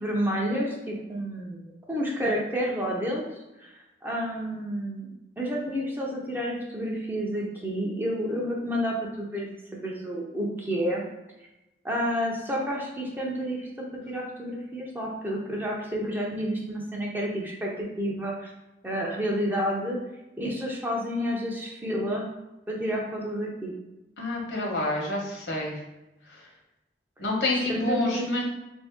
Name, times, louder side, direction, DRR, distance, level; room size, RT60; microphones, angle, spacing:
voice 1, 0.0-5.1 5.4-11.0 11.8-18.5 18.8-20.0 20.4-22.2 22.7-23.7 27.5-28.3, equal, 10° right, -3 dB, 0.6 m, -30 dB
voice 2, 24.2-25.8 26.3-26.4 27.2-28.4, left 2 dB, 70° left, -2 dB, 1.0 m, -28 dB
3.6 x 2.6 x 3.5 m, 0.97 s
head